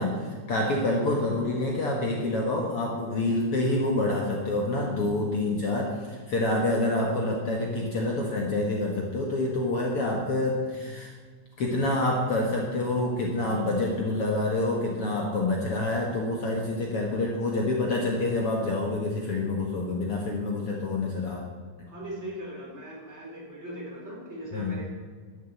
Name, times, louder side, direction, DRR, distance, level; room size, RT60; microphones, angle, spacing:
voice 1, 0.0-11.1 11.6-21.5 24.5-24.8, left 2 dB, 50° left, -1 dB, 2.0 m, -27 dB
voice 2, 21.9-24.9, right 1 dB, 20° right, -3 dB, 3.9 m, -39 dB
12.5 x 7.6 x 7.9 m, 1.5 s
omnidirectional pair, 3.9 m